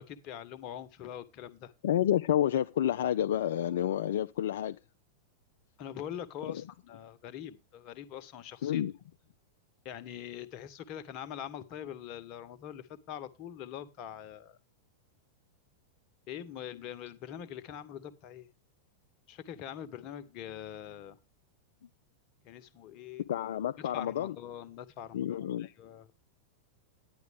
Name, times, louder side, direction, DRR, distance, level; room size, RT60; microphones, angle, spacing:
voice 1, 0.0-1.7 5.8-8.9 9.8-14.6 16.3-18.5 19.3-21.2 22.4-23.2 23.8-26.1, left 10 dB, 40° left, 1.2 m, -43 dB
voice 2, 1.8-4.8 6.5-6.6 8.6-8.9 23.3-24.4 25.1-25.7, left 11 dB, 60° left, 0.5 m, -29 dB
10.5 x 9.6 x 3.5 m
figure-of-eight pair, 95°, 0 cm